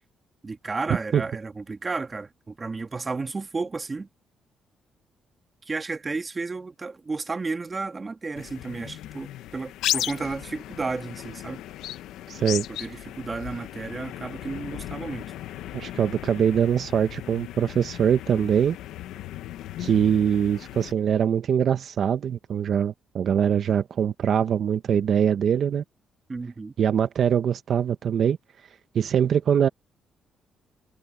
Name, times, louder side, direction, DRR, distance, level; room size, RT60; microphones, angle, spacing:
voice 1, 0.4-4.1 5.7-11.6 12.8-15.3 26.3-26.7, right 3 dB, 30° right, 1.8 m, -32 dB
sound 1, 8.4-20.9, left 13 dB, 85° left, 1.0 m, -36 dB
voice 2, 12.3-12.6 15.7-18.8 19.8-25.8 26.8-28.4 28.9-29.7, right 8 dB, 60° right, 1.0 m, -23 dB
cardioid pair, 90°, 0 cm